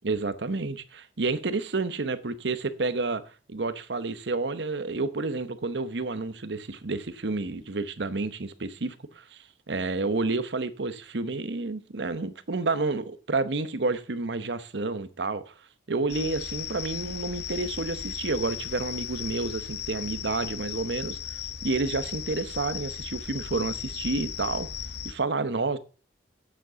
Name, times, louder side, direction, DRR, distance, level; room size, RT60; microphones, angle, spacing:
voice 1, 0.0-3.2 3.5-15.5 15.9-24.7 25.0-25.8, right 3 dB, 80° right, 0.9 m, -30 dB
sound 1, 16.1-25.1, left 9 dB, 65° left, 0.9 m, -36 dB
8.8 x 7.8 x 6.8 m
head